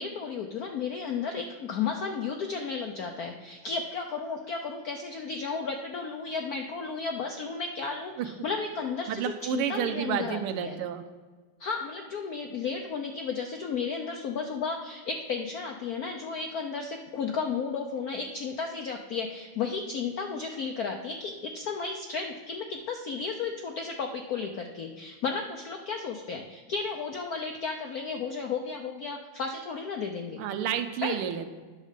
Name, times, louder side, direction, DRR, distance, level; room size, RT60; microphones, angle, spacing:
voice 1, 0.0-10.8 11.6-30.4 31.0-31.2, left 5 dB, 75° left, 3 dB, 0.8 m, -33 dB
voice 2, 9.1-11.0 30.4-31.6, right 10 dB, 85° right, 8 dB, 1.6 m, -30 dB
9.5 x 6.6 x 5.0 m, 1.4 s
omnidirectional pair, 2.4 m